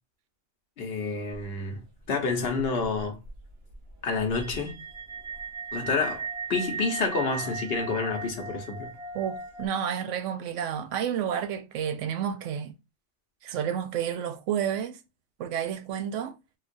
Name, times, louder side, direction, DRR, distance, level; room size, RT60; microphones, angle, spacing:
voice 1, 0.8-1.8 2.1-3.2 4.0-4.8 5.7-8.9, left 4 dB, 60° left, 1.0 m, -29 dB
sound 1, 1.3-2.1 2.4-9.7, right 4 dB, 60° right, 1.0 m, -37 dB
voice 2, 9.1-12.7 13.4-15.0 15.4-16.4, right 8 dB, 85° right, 1.0 m, -30 dB
3.8 x 2.4 x 2.4 m
omnidirectional pair, 1.2 m